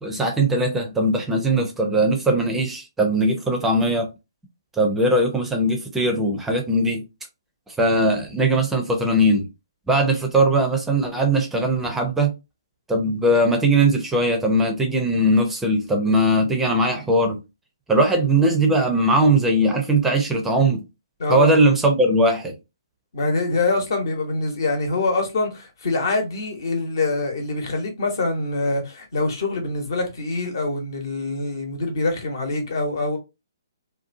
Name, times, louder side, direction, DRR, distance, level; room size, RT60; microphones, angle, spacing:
voice 1, 0.0-4.1 4.8-7.0 7.7-9.5 9.9-12.3 12.9-17.4 17.9-20.8 21.3-22.5, right 1 dB, 10° right, 0.5 m, -20 dB
voice 2, 21.2-21.6 23.1-33.2, left 2 dB, 55° left, 1.0 m, -24 dB
2.6 x 2.2 x 2.6 m
figure-of-eight pair, 130°, 2 cm